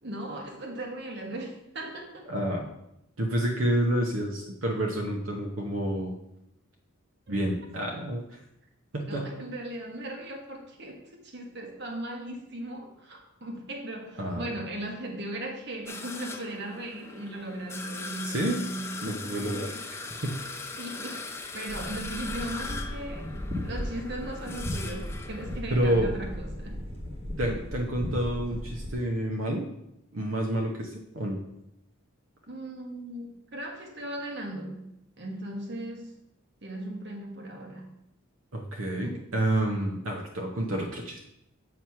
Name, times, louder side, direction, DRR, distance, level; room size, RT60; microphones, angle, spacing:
voice 1, 0.0-2.3 9.1-19.6 20.8-23.3 23.6-26.8 32.5-36.1 36.6-37.9 39.0-39.2, right 1 dB, 55° right, 2 dB, 1.2 m, -38 dB
voice 2, 2.3-2.7 3.2-6.1 7.3-8.4 8.9-9.4 14.2-14.5 18.2-18.6 19.0-20.3 25.7-26.1 27.4-29.6 30.1-31.4 38.5-41.2, right 1 dB, 75° right, 1 dB, 0.9 m, -29 dB
sound 1, 15.9-25.6, left 3 dB, 10° left, 0.4 m, -40 dB
sound 2, 21.7-28.9, left 1 dB, 30° right, 1.4 m, -36 dB
7.7 x 3.0 x 5.7 m, 0.82 s
head